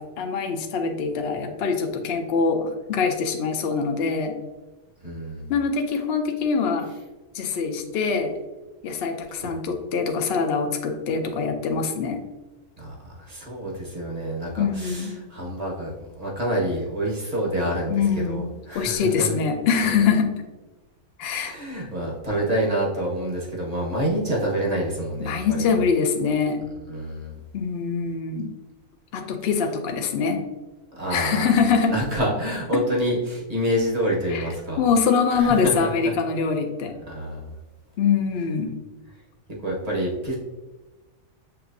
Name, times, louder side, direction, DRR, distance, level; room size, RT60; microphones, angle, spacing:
voice 1, 0.0-4.3 5.5-6.9 7.3-8.3 8.8-12.2 14.6-15.1 17.9-18.5 18.7-20.3 21.2-21.5 25.2-26.6 27.5-28.5 29.1-30.4 31.1-31.9 34.3-34.5 34.8-36.9 38.0-38.7, left 5 dB, 60° left, 5 dB, 0.7 m, -24 dB
voice 2, 5.0-5.5 9.4-9.5 12.8-19.3 21.2-25.7 26.9-27.4 30.9-31.5 31.9-34.8 35.3-36.1 37.1-37.5 39.6-40.4, right 1 dB, 30° right, -3 dB, 1.0 m, -27 dB
6.8 x 3.0 x 2.6 m, 1.1 s
omnidirectional pair, 1.5 m